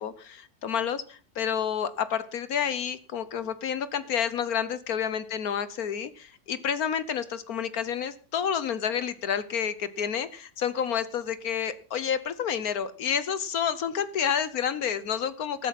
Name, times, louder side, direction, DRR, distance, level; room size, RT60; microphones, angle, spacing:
voice 1, 0.6-1.0 1.4-6.1 6.5-10.3 10.6-15.7, left 8 dB, 70° left, 14 dB, 1.4 m, -29 dB
14.5 x 12.5 x 5.8 m, 0.39 s
omnidirectional pair, 1.6 m